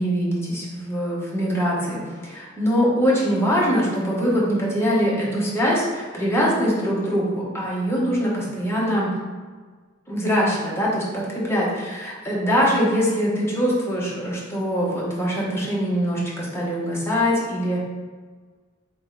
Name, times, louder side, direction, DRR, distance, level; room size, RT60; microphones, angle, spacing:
voice 1, 0.0-9.1 10.1-17.8, equal, 10° left, -5 dB, 1.0 m, -23 dB
4.1 x 2.9 x 3.9 m, 1.5 s
head